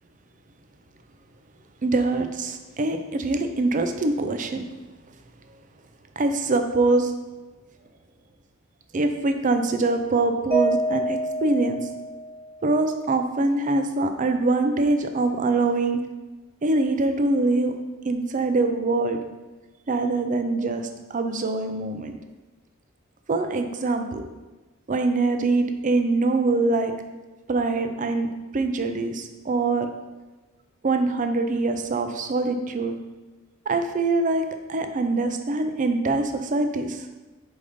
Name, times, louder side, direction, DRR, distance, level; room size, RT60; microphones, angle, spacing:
voice 1, 1.8-4.6 6.2-7.1 8.9-11.8 12.6-16.0 16.6-17.7 18.0-19.2 19.9-22.1 23.3-24.3 24.9-26.9 27.5-28.3 28.5-29.9 30.8-32.9 33.7-37.0, right 3 dB, 40° right, 7 dB, 0.5 m, -24 dB
Mallet percussion, 10.5-12.8, right 1 dB, 10° left, 0.6 m, -27 dB
5.0 x 4.0 x 5.1 m, 1.2 s
head